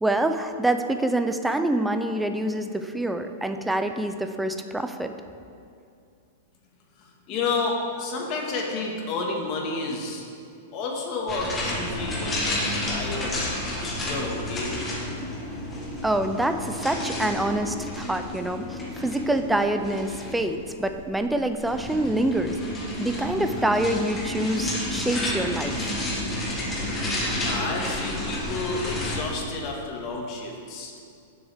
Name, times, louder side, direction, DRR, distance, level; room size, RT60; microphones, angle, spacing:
voice 1, 0.0-5.1 16.0-22.6 23.0-25.9, right 1 dB, 5° right, 7 dB, 0.4 m, -26 dB
voice 2, 7.0-10.2 10.7-13.4 14.0-14.9 27.4-30.9, left 3 dB, 35° left, -1 dB, 1.7 m, -30 dB
sound 1, 11.3-29.2, left 1 dB, 15° left, 1.4 m, -31 dB
16.0 x 7.1 x 3.5 m, 2.4 s
supercardioid pair, 165°, 0 cm